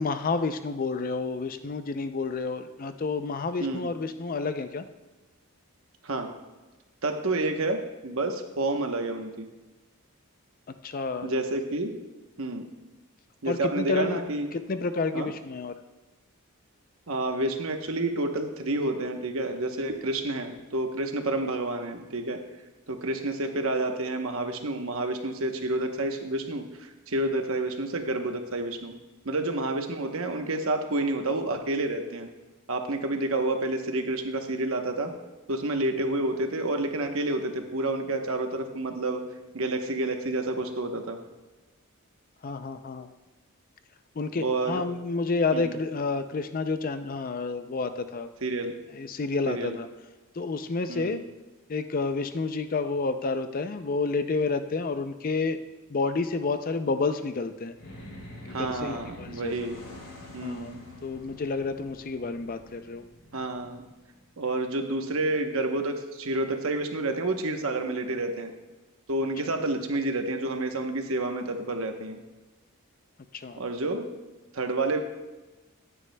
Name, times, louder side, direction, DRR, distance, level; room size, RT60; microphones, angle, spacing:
voice 1, 0.0-4.9 10.8-11.3 13.5-14.2 14.5-15.7 42.4-43.1 44.2-48.3 48.9-49.9 50.4-51.2 51.7-55.6 55.9-57.7 58.5-59.5 60.4-60.8 61.0-63.0 73.3-73.6, left 4 dB, 40° left, 10 dB, 0.4 m, -30 dB
voice 2, 7.0-9.5 11.2-12.0 12.4-12.6 13.4-14.5 15.1-15.3 17.1-22.4 22.9-28.9 29.2-32.3 32.7-35.1 35.5-39.2 39.5-41.2 44.4-44.8 45.5-45.7 48.4-48.7 49.5-49.8 50.9-51.2 58.5-59.8 60.3-60.8 63.3-63.8 64.4-68.5 69.1-72.2 73.6-74.1 74.5-75.0, right 2 dB, 65° right, 5 dB, 1.0 m, -29 dB
sound 1, 57.7-64.3, left 1 dB, 65° left, 2.8 m, -47 dB
14.5 x 9.8 x 2.2 m, 1.2 s
head